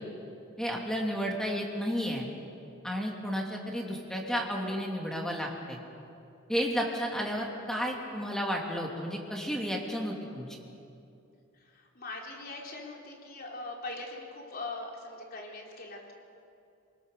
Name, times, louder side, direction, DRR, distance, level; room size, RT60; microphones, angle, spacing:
voice 1, 0.6-2.2 2.8-5.8 6.5-10.6, equal, 5° left, -1 dB, 2.7 m, -32 dB
voice 2, 11.6-16.1, left 2 dB, 50° left, -1 dB, 3.9 m, -41 dB
27.5 x 20.0 x 6.7 m, 2.7 s
head